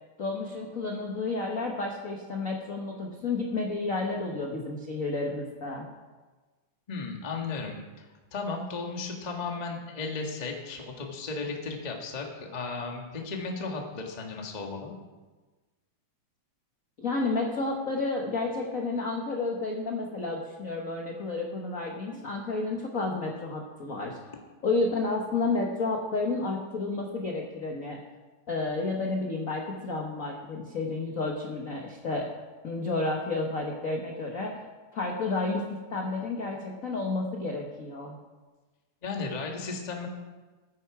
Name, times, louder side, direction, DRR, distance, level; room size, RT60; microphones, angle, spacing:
voice 1, 0.2-5.9 17.0-24.2 24.6-28.0 28.5-32.3 32.6-34.5 34.9-38.1, left 3 dB, 65° left, 0 dB, 0.8 m, -31 dB
voice 2, 6.9-8.1 8.3-14.9 39.0-40.1, left 4 dB, 35° left, 1 dB, 0.7 m, -35 dB
15.0 x 9.6 x 4.8 m, 1.3 s
omnidirectional pair, 3.4 m